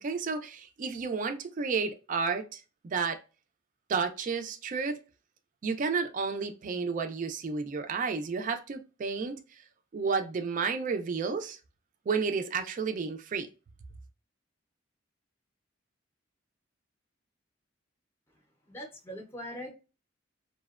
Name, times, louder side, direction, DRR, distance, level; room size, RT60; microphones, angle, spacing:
voice 1, 0.0-3.2 3.9-5.0 5.6-9.6 9.9-11.6 12.1-13.5, right 5 dB, 40° right, 0.3 m, -31 dB
voice 2, 18.7-19.7, equal, 10° left, 0.5 m, -41 dB
2.7 x 2.1 x 2.3 m
head